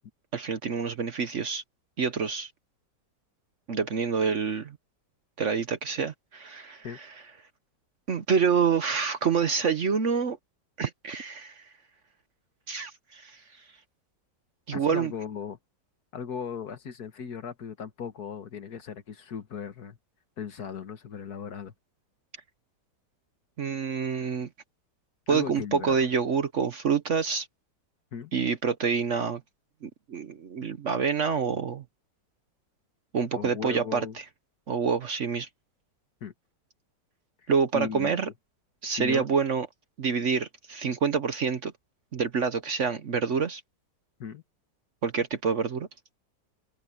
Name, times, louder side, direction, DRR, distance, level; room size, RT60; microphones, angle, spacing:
voice 1, 0.3-1.6 2.0-2.5 3.7-4.8 5.4-7.1 8.1-10.4 10.8-11.7 12.7-13.4 14.7-15.1 23.6-24.5 25.3-27.5 28.3-29.4 29.8-31.8 33.1-34.1 34.7-35.5 37.5-38.3 38.8-39.7 40.0-41.7 42.1-43.6 45.0-45.9, right 6 dB, 50° right, 1.1 m, -27 dB
voice 2, 14.7-15.6 16.1-20.0 20.4-21.7 25.3-26.1 28.1-28.3 33.3-34.2 36.2-36.3 37.7-38.3 39.0-39.4 44.2-44.4, left 7 dB, 65° left, 1.9 m, -37 dB
omnidirectional pair, 1.9 m